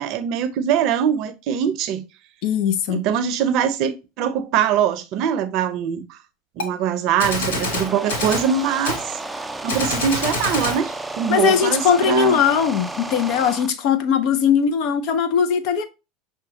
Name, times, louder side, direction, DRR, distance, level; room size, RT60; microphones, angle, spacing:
voice 1, 0.0-2.0 2.9-6.2 6.6-9.0 9.6-12.4, right 8 dB, 55° right, 0.5 m, -22 dB
voice 2, 2.4-3.1 11.3-15.8, left 7 dB, 60° left, 0.6 m, -19 dB
Gunshot gunfire, 6.6-6.7 7.2-8.5 8.9-9.0 9.7-10.8, left 2 dB, 80° left, 0.9 m, -26 dB
sound 1, 7.4-13.7, right 2 dB, 10° right, 0.4 m, -33 dB
5.7 x 2.2 x 2.8 m
hypercardioid pair, 90°, 0 cm